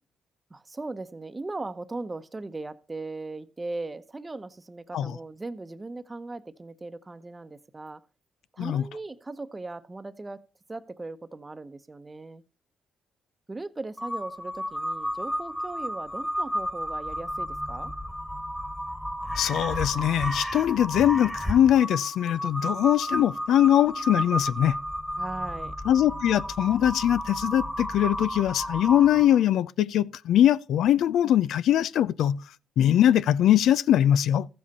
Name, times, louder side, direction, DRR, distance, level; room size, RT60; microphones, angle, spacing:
voice 1, 0.5-8.0 8.5-10.4 10.7-12.4 13.5-17.9 23.9-24.1 25.2-25.7 29.3-29.5, right 2 dB, 20° right, 0.9 m, -38 dB
Crow, 14.0-29.5, equal, 5° left, 1.5 m, -32 dB
voice 2, 19.4-24.8 25.9-32.4 32.8-34.5, left 11 dB, 75° left, 0.5 m, -22 dB
14.0 x 7.6 x 4.2 m
cardioid pair, 90°, 0 cm